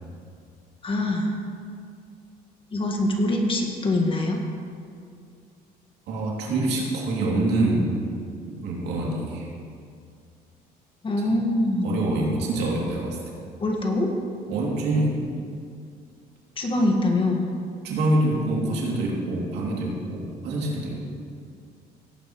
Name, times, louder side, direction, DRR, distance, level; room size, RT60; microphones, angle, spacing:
voice 1, 0.8-1.4 2.7-4.4 11.0-12.1 13.6-14.1 16.6-17.5, left 1 dB, 30° left, 2 dB, 1.7 m, -24 dB
voice 2, 6.1-7.9 8.5-9.5 11.8-13.2 14.5-15.2 17.8-21.0, right 2 dB, 85° right, -3 dB, 2.7 m, -25 dB
17.5 x 9.4 x 3.1 m, 2.3 s
cardioid pair, 110°, 17 cm